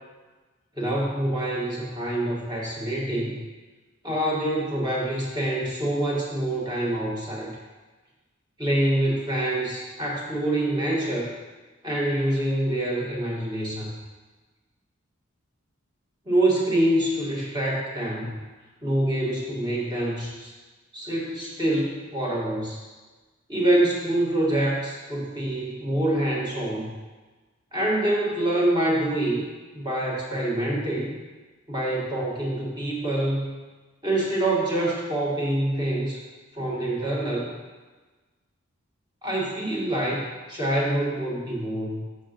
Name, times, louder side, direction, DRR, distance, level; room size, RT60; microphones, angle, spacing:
voice 1, 0.8-3.4 4.0-7.5 8.6-11.3 11.8-13.9 16.3-18.3 18.8-20.5 20.9-22.8 23.5-26.9 27.7-29.4 29.7-31.2 31.7-33.5 34.0-36.2 36.5-37.5 39.2-42.0, right 1 dB, 20° right, -4 dB, 1.8 m, -26 dB
11.0 x 6.5 x 3.0 m, 1.3 s
head